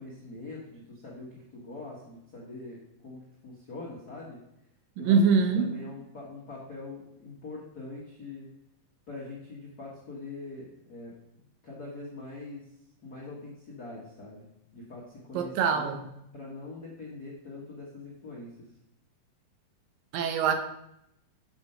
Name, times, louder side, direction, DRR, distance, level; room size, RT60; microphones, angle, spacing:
voice 1, 0.0-4.4 5.0-5.2 5.5-8.5 9.1-12.6 13.0-15.9 16.3-18.5, left 3 dB, 55° left, -5 dB, 1.0 m, -43 dB
voice 2, 5.0-5.7 15.3-16.0 20.1-20.5, right 5 dB, 75° right, 6 dB, 2.4 m, -23 dB
7.9 x 5.1 x 5.5 m, 0.80 s
omnidirectional pair, 4.2 m